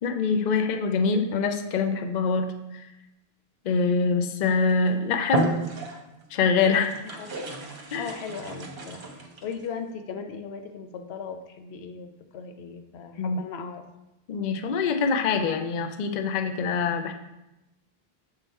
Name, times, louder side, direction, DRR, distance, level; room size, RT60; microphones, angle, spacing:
voice 1, 0.0-2.9 3.6-5.6 6.3-6.9 7.9-8.1 13.2-13.4 14.3-17.1, left 5 dB, 55° left, 6 dB, 0.6 m, -24 dB
sound 1, 4.6-4.8 5.2-6.3 6.8-9.6, right 2 dB, 55° right, 1.0 m, -32 dB
voice 2, 7.9-13.8, left 5 dB, 85° left, 6 dB, 0.9 m, -38 dB
7.0 x 3.4 x 4.1 m, 0.93 s
omnidirectional pair, 1.1 m